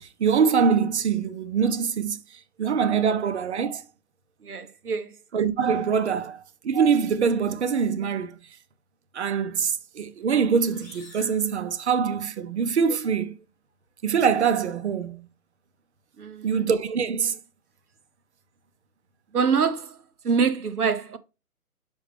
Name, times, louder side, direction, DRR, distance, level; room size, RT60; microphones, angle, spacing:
voice 1, 0.0-2.2 2.6-3.8 5.3-8.4 9.1-13.4 14.0-15.3 16.4-17.4, right 6 dB, 45° right, 0.8 m, -24 dB
voice 2, 4.4-5.1 6.1-6.2 16.2-16.7 19.3-20.0 20.2-21.2, right 6 dB, 75° right, 1.0 m, -25 dB
sound 1, 10.6-12.4, left 1 dB, 5° right, 0.5 m, -51 dB
6.2 x 5.3 x 3.3 m
figure-of-eight pair, 140°, 46 cm